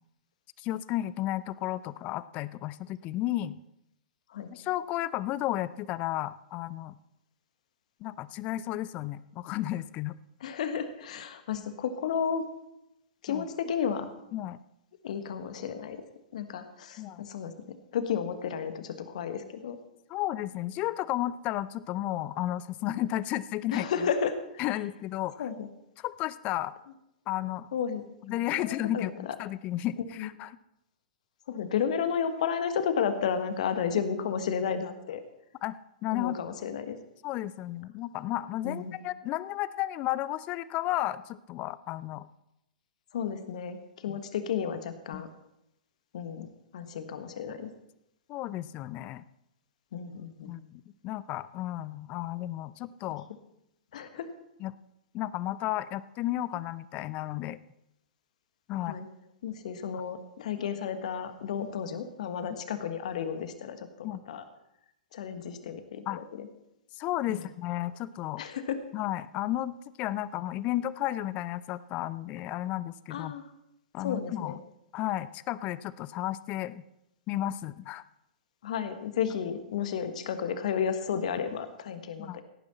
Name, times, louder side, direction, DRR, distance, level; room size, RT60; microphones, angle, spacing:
voice 1, 0.6-3.6 4.5-7.0 8.0-10.2 13.3-13.5 14.3-14.6 17.0-17.2 20.1-23.9 24.6-25.5 26.0-26.7 27.3-27.7 28.3-30.5 35.6-36.3 37.2-42.3 44.1-44.2 45.1-45.2 48.3-49.2 50.5-53.3 54.6-54.7 55.1-57.6 58.7-59.0 64.0-64.2 66.1-66.2 67.0-68.5 68.9-73.3 73.9-74.6 74.9-76.8 77.3-78.0 82.2-82.4, left 14 dB, 30° left, 18 dB, 0.5 m, -33 dB
voice 2, 10.4-12.5 13.2-14.1 15.0-16.0 16.3-17.5 17.9-19.8 23.7-24.7 25.4-25.7 27.7-28.0 28.3-29.4 30.2-30.3 31.5-35.2 36.1-37.0 38.6-39.0 43.1-45.3 46.1-46.5 46.7-47.7 49.9-50.5 53.9-54.3 58.8-59.1 59.4-64.4 65.1-66.5 67.3-67.5 68.4-68.8 73.1-73.4 74.0-74.6 78.6-82.4, left 7 dB, 55° left, 10 dB, 1.4 m, -32 dB
17.0 x 9.8 x 4.2 m, 0.84 s
figure-of-eight pair, 110°, 4 cm